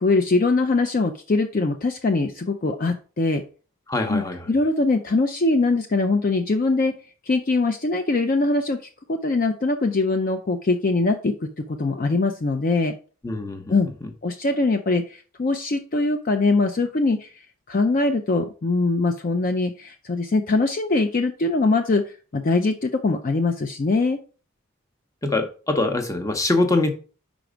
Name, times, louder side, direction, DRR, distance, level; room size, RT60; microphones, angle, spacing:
voice 1, 0.0-3.4 4.1-4.2 4.5-6.9 7.3-8.8 9.1-11.3 11.8-12.9 13.7-13.9 14.2-17.3 17.7-22.0 22.3-24.2, left 3 dB, 40° left, 0.4 m, -22 dB
voice 2, 3.9-4.5 13.2-13.7 14.0-14.1 25.2-26.9, left 2 dB, 15° left, 0.8 m, -23 dB
5.1 x 4.6 x 5.0 m
head